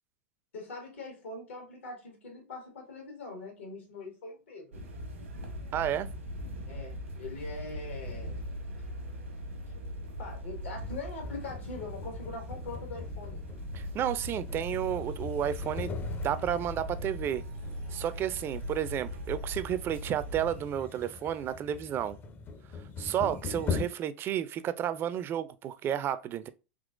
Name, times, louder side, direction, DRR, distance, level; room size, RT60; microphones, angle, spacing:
voice 1, 0.5-4.8 6.6-8.4 10.2-13.4, left 3 dB, 80° left, 1.4 m, -42 dB
sound 1, 4.7-20.6, equal, 90° right, 1.0 m, -40 dB
voice 2, 5.7-6.1 13.7-15.9 16.2-17.4 17.9-22.2 23.0-26.5, right 10 dB, 35° right, 0.3 m, -32 dB
sound 2, 11.2-23.9, left 5 dB, 30° left, 0.5 m, -41 dB
3.7 x 2.9 x 2.4 m
hypercardioid pair, 90°, 7 cm